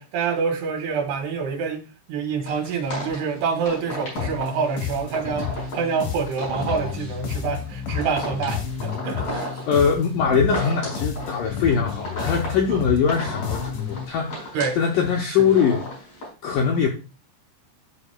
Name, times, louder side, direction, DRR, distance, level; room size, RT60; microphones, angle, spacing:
voice 1, 0.0-9.6 12.7-12.8 14.5-14.8 15.4-15.5, right 5 dB, 75° right, 3.5 m, -27 dB
sound 1, 2.4-16.3, equal, 35° left, 6.1 m, -35 dB
sound 2, 4.2-14.1, left 7 dB, 60° left, 2.4 m, -31 dB
voice 2, 9.7-15.9 16.4-16.9, left 6 dB, 75° left, 2.0 m, -22 dB
14.0 x 6.0 x 2.3 m
omnidirectional pair, 4.9 m